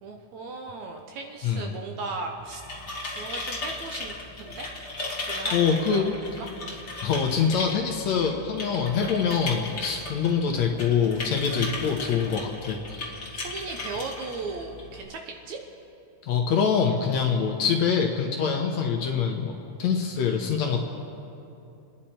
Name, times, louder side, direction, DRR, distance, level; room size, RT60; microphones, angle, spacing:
voice 1, 0.0-2.6 3.2-4.1 4.4-4.7 5.2-6.8 13.3-15.6, right 3 dB, 70° right, 3 dB, 1.9 m, -37 dB
sound 1, 2.4-15.0, left 2 dB, 35° left, 1.0 m, -36 dB
voice 2, 5.5-6.1 7.0-13.1 16.2-19.5 19.8-20.8, left 6 dB, 65° left, 2 dB, 1.9 m, -25 dB
28.5 x 10.0 x 4.4 m, 2.7 s
omnidirectional pair, 3.9 m